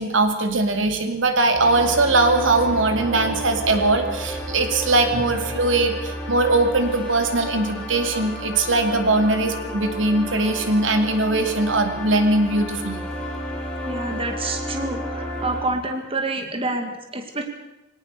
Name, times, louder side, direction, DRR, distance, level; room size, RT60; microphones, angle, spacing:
voice 1, 0.0-13.0, right 2 dB, 75° right, 6 dB, 2.7 m, -20 dB
sound 1, 1.5-15.6, equal, 5° left, 6.4 m, -32 dB
voice 2, 13.8-17.4, right 2 dB, 30° right, 5 dB, 2.1 m, -28 dB
23.0 x 18.0 x 6.8 m, 0.97 s
head